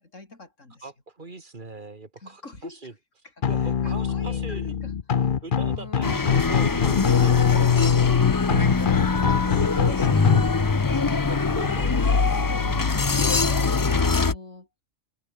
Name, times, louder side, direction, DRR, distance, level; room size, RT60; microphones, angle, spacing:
voice 1, 0.0-0.9 2.2-2.9 3.2-5.3 5.7-6.4 8.7-11.8 12.8-14.7, left 2 dB, 85° left, 4.6 m, -45 dB
voice 2, 0.8-2.9 3.5-4.8 5.4-8.0 9.6-9.9 11.3-12.8, right 3 dB, 40° right, 2.4 m, -41 dB
sound 1, 3.4-10.4, left 7 dB, 45° left, 0.9 m, -22 dB
sound 2, 6.0-14.3, left 4 dB, 25° left, 0.4 m, -24 dB
sound 3, 6.3-14.4, left 4 dB, 70° left, 2.4 m, -29 dB
omnidirectional pair, 1.3 m